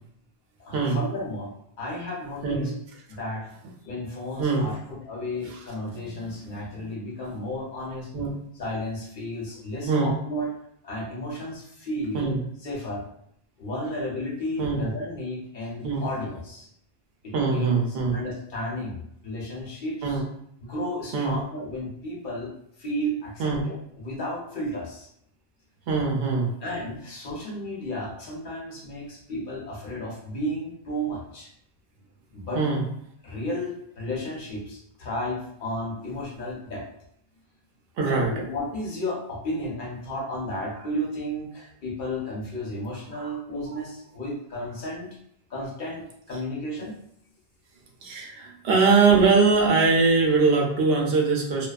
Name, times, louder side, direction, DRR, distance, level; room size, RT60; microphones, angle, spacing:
voice 1, 0.6-1.5 1.8-2.7 3.1-3.4 3.8-8.1 8.5-10.5 10.8-12.4 12.6-13.0 13.6-16.7 17.2-20.2 20.6-22.5 22.8-25.1 26.6-31.5 32.3-32.6 33.2-36.8 38.0-45.1 45.5-46.9, left 1 dB, 60° left, -3 dB, 0.8 m, -33 dB
voice 2, 17.3-18.2 20.0-20.2 21.1-21.4 23.4-23.6 25.9-26.5 32.5-32.8 38.0-38.3 43.1-43.3 43.7-43.8 48.0-51.7, right 4 dB, 70° right, -1 dB, 0.8 m, -22 dB
2.4 x 2.2 x 2.3 m, 0.71 s
omnidirectional pair, 1.1 m